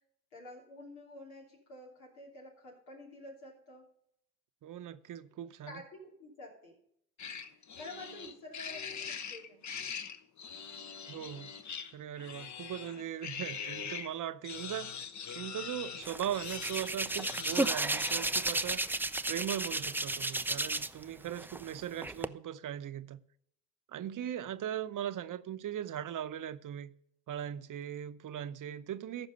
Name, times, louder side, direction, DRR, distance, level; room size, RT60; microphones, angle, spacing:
voice 1, 0.3-3.9 5.6-6.8 7.5-9.7, left 1 dB, 90° left, 3.0 m, -49 dB
voice 2, 4.6-5.8 11.1-11.5 11.9-15.1 15.3-18.8 19.3-23.2 23.9-26.9 27.3-29.3, right 10 dB, 50° right, 0.8 m, -39 dB
sound 1, 7.2-14.1 14.4-18.1, left 7 dB, 45° left, 1.0 m, -43 dB
Hands, 16.0-21.0 21.4-22.3, right 2 dB, 5° right, 0.3 m, -33 dB
14.0 x 5.3 x 5.3 m
hypercardioid pair, 55°, 41 cm